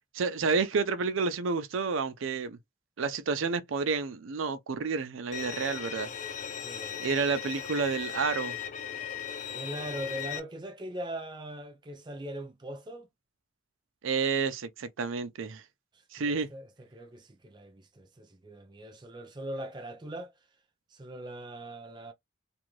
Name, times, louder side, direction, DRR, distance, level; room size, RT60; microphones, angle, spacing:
voice 1, 0.1-2.6 3.0-6.1 7.0-8.5 14.0-15.6 16.1-16.5, right 4 dB, 80° right, 0.5 m, -30 dB
Bowed string instrument, 5.3-10.4, left 9 dB, 40° left, 0.4 m, -37 dB
voice 2, 6.6-7.0 9.5-13.1 15.9-20.3 20.9-22.1, right 1 dB, 20° right, 0.5 m, -41 dB
2.6 x 2.5 x 3.1 m
head